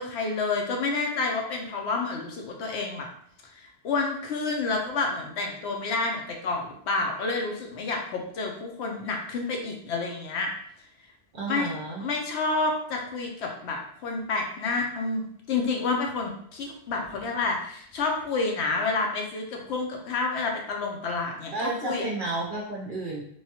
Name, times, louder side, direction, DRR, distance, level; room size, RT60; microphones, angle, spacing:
voice 1, 0.0-3.1 3.4-10.5 11.5-11.7 12.0-22.1, left 3 dB, 70° left, 1 dB, 0.8 m, -29 dB
voice 2, 11.3-12.1 21.5-23.2, right 2 dB, 55° right, -3 dB, 0.6 m, -31 dB
3.1 x 2.2 x 2.7 m, 0.63 s
omnidirectional pair, 1.3 m